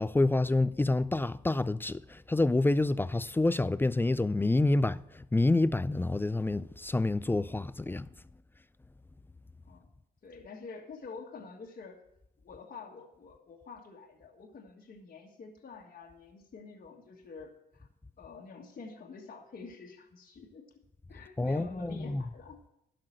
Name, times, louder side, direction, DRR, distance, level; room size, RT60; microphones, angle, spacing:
voice 1, 0.0-8.1 21.4-22.2, left 2 dB, 10° left, 0.3 m, -28 dB
voice 2, 10.2-12.0 12.4-17.9 18.2-20.6 21.1-22.6, left 4 dB, 45° left, 1.7 m, -48 dB
11.5 x 6.0 x 7.7 m
cardioid pair, 90°, 20 cm